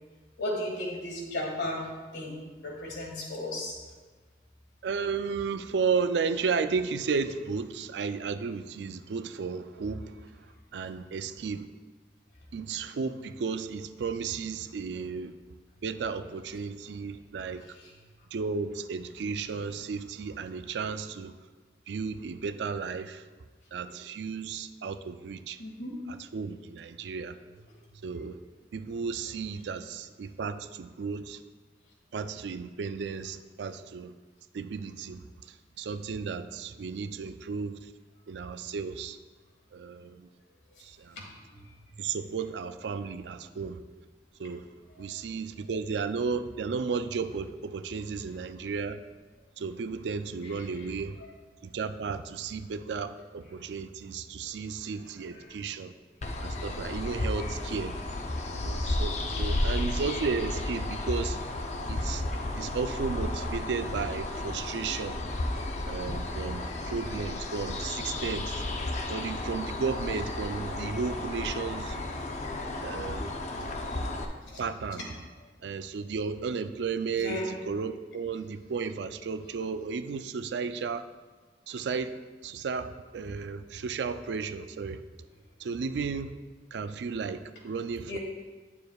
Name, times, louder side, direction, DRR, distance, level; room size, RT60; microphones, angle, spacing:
voice 1, 0.4-1.9 2.1-2.3 2.6-3.7 14.9-15.1 25.6-26.0 58.5-58.6 65.6-65.7 66.4-66.6 73.8-73.9 74.4-74.6 77.2-77.5 88.1-88.2, left 1 dB, 80° left, -1 dB, 1.7 m, -35 dB
voice 2, 4.8-10.3 10.7-11.7 12.5-15.3 15.8-17.6 18.3-21.4 21.9-23.2 23.7-25.6 26.1-27.4 28.0-28.4 28.7-31.4 32.1-34.1 34.5-37.8 38.3-39.2 39.7-40.3 40.8-41.3 42.0-43.8 44.4-44.6 45.0-49.0 49.6-51.2 51.6-55.9 56.4-57.9 58.5-61.4 61.9-62.2 62.6-65.2 65.9-68.6 69.1-72.0 72.8-73.3 74.6-75.1 75.6-81.1 81.7-85.0 85.6-86.3 86.7-88.2, right 5 dB, 80° right, 11 dB, 0.4 m, -34 dB
sound 1, 56.2-74.2, left 2 dB, 40° left, 0.5 m, -33 dB
9.5 x 6.9 x 2.3 m, 1.4 s
head